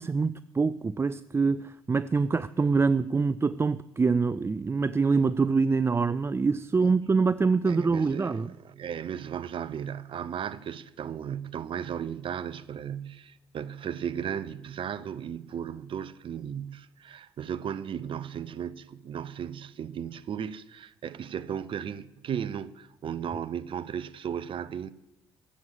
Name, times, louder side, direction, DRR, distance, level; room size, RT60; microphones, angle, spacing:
voice 1, 0.0-8.5, right 4 dB, 20° right, 0.4 m, -25 dB
voice 2, 7.7-24.9, right 8 dB, 50° right, 0.7 m, -35 dB
14.0 x 7.8 x 7.7 m
hypercardioid pair, 50°, 12 cm